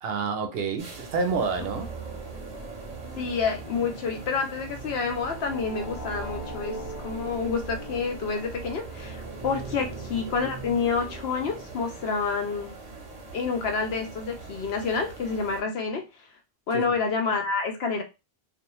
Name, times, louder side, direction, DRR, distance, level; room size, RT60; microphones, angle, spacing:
voice 1, 0.0-1.9 9.8-9.9 16.7-16.8, right 4 dB, 70° right, 0.8 m, -28 dB
sound 1, 0.8-15.6, right 3 dB, 45° right, 0.7 m, -43 dB
sound 2, 1.0-12.2, right 3 dB, 10° right, 0.7 m, -40 dB
voice 2, 3.2-6.8 7.0-12.7 13.3-16.0 16.7-18.0, left 5 dB, 75° left, 0.9 m, -28 dB
2.4 x 2.1 x 2.9 m
omnidirectional pair, 1.1 m